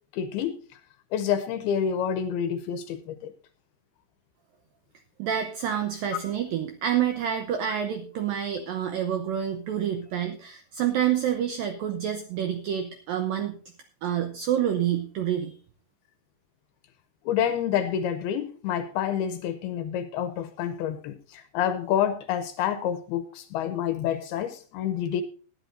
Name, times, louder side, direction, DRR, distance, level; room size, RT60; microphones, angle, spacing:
voice 1, 0.1-0.6 1.1-3.3 17.3-25.2, left 9 dB, 80° left, 2.4 m, -28 dB
voice 2, 5.2-13.5 14.0-15.5, right 9 dB, 80° right, 2.1 m, -28 dB
19.5 x 11.0 x 2.6 m
omnidirectional pair, 5.1 m